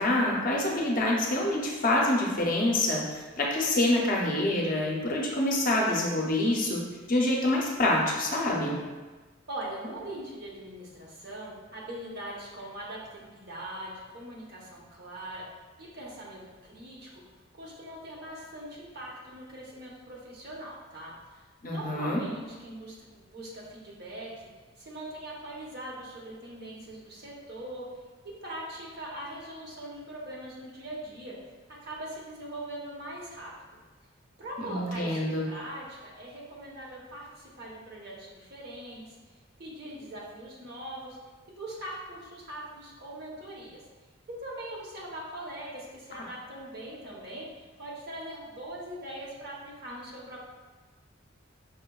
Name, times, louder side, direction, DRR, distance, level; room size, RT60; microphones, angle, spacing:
voice 1, 0.0-6.8 7.1-8.7 21.6-22.2 34.6-35.5, left 1 dB, 40° left, -2 dB, 0.5 m, -26 dB
voice 2, 9.5-15.4 15.8-17.2 17.5-24.5 24.8-27.9 28.4-31.4 31.8-33.5 34.4-37.3 37.6-39.2 39.6-41.2 41.6-43.8 44.3-47.5 47.8-50.4, right 1 dB, 50° right, -4 dB, 0.7 m, -41 dB
5.6 x 2.1 x 2.2 m, 1.3 s
head